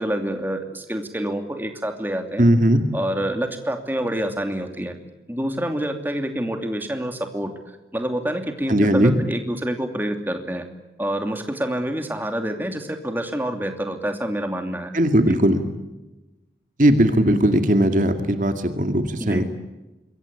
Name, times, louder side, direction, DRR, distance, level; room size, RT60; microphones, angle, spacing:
voice 1, 0.0-2.5 2.9-5.0 5.3-7.5 7.9-10.7 11.0-14.9 15.3-15.4 19.2-19.4, right 1 dB, 10° right, 6 dB, 2.7 m, -27 dB
voice 2, 2.4-2.9 8.7-9.1 14.9-15.7 16.8-19.4, right 1 dB, 45° right, 7 dB, 2.2 m, -18 dB
26.5 x 22.5 x 8.4 m, 1.0 s
head